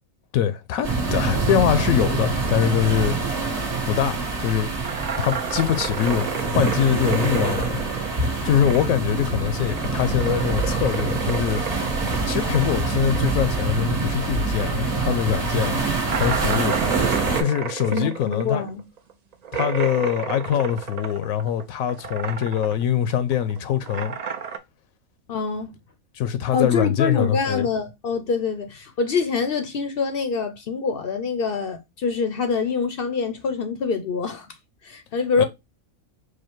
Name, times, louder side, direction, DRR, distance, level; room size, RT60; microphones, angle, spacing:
voice 1, 0.3-3.2 3.9-4.7 5.2-7.8 8.1-11.6 12.3-15.8 16.2-16.8 17.4-18.6 19.5-24.1 26.1-27.7 35.4-35.5, left 10 dB, 80° left, 1.0 m, -23 dB
sound 1, 0.8-17.4, right 3 dB, 55° right, 1.7 m, -25 dB
sound 2, 4.8-9.1 9.4-14.4 14.7-14.8 15.2-15.3 16.0-21.6 21.9-22.8 23.1-24.6, right 7 dB, 70° right, 0.3 m, -31 dB
voice 2, 17.9-18.8 25.3-25.8 26.5-34.5 34.8-35.4, left 5 dB, 55° left, 0.7 m, -25 dB
4.9 x 2.2 x 4.3 m
omnidirectional pair, 1.4 m